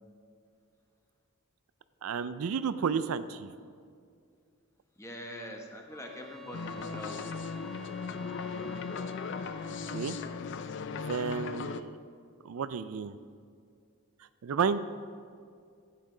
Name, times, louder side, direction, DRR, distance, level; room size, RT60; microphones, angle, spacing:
voice 1, 2.0-3.5 9.9-10.2 10.9-11.9 12.4-13.1 14.4-14.8, right 6 dB, 80° right, 13 dB, 0.4 m, -31 dB
voice 2, 5.0-7.3, left 1 dB, 15° left, 2 dB, 1.1 m, -43 dB
sound 1, 5.9-10.6, left 4 dB, ahead, 1.8 m, -48 dB
sound 2, 6.5-11.8, left 5 dB, 55° left, 0.4 m, -37 dB
12.0 x 8.4 x 3.9 m, 2.2 s
head